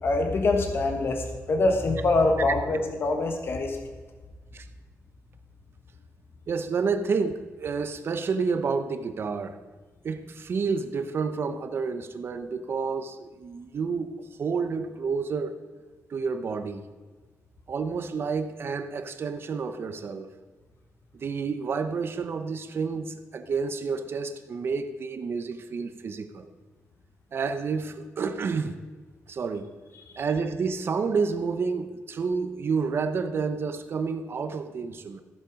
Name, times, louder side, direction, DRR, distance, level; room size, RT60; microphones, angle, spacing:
voice 1, 0.0-3.8 30.1-30.2, left 2 dB, 45° left, 4 dB, 1.2 m, -24 dB
voice 2, 6.5-9.6 10.0-15.6 16.1-16.9 17.7-20.3 21.1-26.5 27.3-28.8 29.3-29.7 30.2-35.2, right 5 dB, 45° right, 9 dB, 0.8 m, -29 dB
14.5 x 7.4 x 5.2 m, 1.4 s
wide cardioid pair, 165°, 6 cm